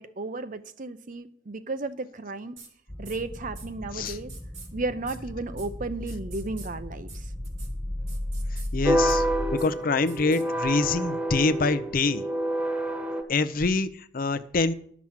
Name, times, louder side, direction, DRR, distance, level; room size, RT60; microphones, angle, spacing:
voice 1, 0.0-2.6 3.0-4.3 4.7-7.3, right 3 dB, 45° right, 11 dB, 0.7 m, -34 dB
sound 1, 2.6-2.7 3.0-3.2 3.5-3.7 4.0-4.7 5.1-5.2 5.6-5.7 6.1-6.7 7.1-7.2 7.4-7.7 8.1-8.7 9.1-9.2 9.6-9.7 10.1-10.4, right 5 dB, 80° right, 2.8 m, -46 dB
sound 2, 2.9-9.5, left 1 dB, 10° left, 0.6 m, -35 dB
voice 2, 8.7-9.2 9.5-12.2 13.3-14.7, left 3 dB, 50° left, 12 dB, 0.6 m, -25 dB
sound 3, 8.8-13.2, right 1 dB, 5° right, 1.2 m, -27 dB
11.5 x 6.1 x 7.3 m, 0.63 s
head